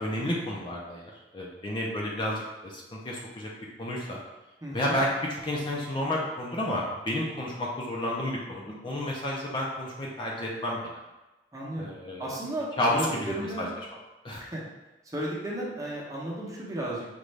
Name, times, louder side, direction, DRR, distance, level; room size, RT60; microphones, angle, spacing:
voice 1, 0.0-3.5 3.8-4.2 4.7-11.0 11.8-12.3 12.8-13.7 14.2-14.4, left 1 dB, 30° left, -3 dB, 0.6 m, -31 dB
voice 2, 4.6-5.0 11.5-11.9 12.2-13.7 14.4-14.6 15.1-17.1, right 1 dB, 20° right, -4 dB, 0.8 m, -34 dB
5.2 x 2.5 x 3.2 m, 1.1 s
head